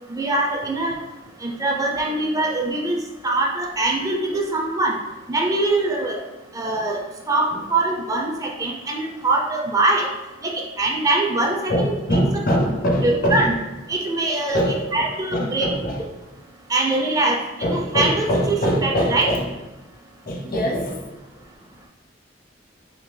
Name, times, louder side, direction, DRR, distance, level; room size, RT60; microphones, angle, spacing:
voice 1, 0.1-1.0 1.4-3.0 3.2-5.0 5.3-6.2 6.5-7.0 7.3-10.1 10.4-12.2 13.0-13.5 13.9-15.7 16.7-19.3, right 2 dB, 20° right, 0 dB, 0.3 m, -23 dB
voice 2, 11.7-13.5 14.5-16.0 17.6-19.5 20.3-21.1, equal, 50° left, 0 dB, 0.6 m, -23 dB
3.6 x 2.6 x 3.1 m, 1.0 s
head